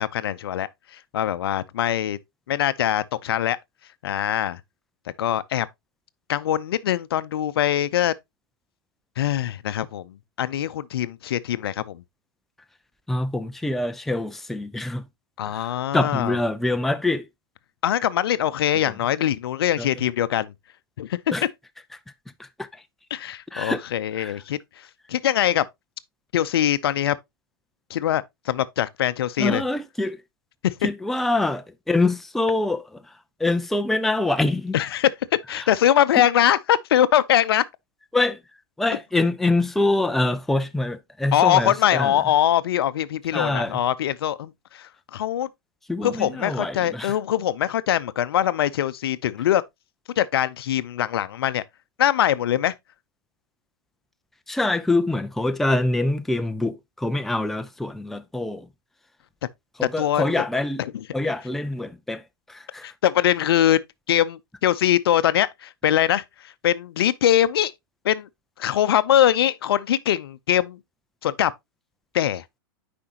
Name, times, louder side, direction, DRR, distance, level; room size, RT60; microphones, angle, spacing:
voice 1, 0.0-2.2 2.5-3.6 4.0-4.6 5.2-5.7 6.3-8.1 9.2-12.0 15.4-16.4 17.8-20.5 21.0-21.2 23.1-24.6 25.1-25.7 26.3-27.2 27.9-29.6 30.6-30.7 34.7-35.1 35.5-37.6 41.3-45.5 46.0-49.6 50.2-51.6 52.0-52.7 60.0-60.3 60.8-61.0 62.8-63.8 64.1-67.7 68.0-68.3 68.6-70.8 71.2-71.5 72.1-72.4, left 11 dB, 75° left, 0.6 m, -22 dB
voice 2, 13.1-15.0 15.5-17.3 19.8-19.9 21.3-21.4 22.4-22.7 23.5-23.8 24.2-24.4 29.4-30.2 30.8-33.0 33.4-34.7 38.1-38.4 38.8-42.1 43.3-43.8 45.9-47.1 54.5-58.7 59.8-60.8 61.1-62.2 62.5-62.9, left 2 dB, ahead, 0.4 m, -25 dB
8.5 x 5.2 x 2.8 m
hypercardioid pair, 125°, 13 cm